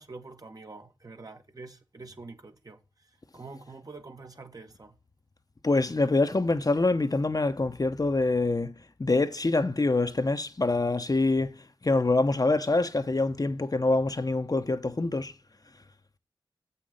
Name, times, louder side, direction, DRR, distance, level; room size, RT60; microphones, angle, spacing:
voice 1, 0.0-4.9, right 3 dB, 40° right, 1.4 m, -46 dB
voice 2, 5.6-8.7 9.0-15.3, left 2 dB, 40° left, 0.9 m, -25 dB
7.5 x 5.8 x 5.0 m
cardioid pair, 50°, 9 cm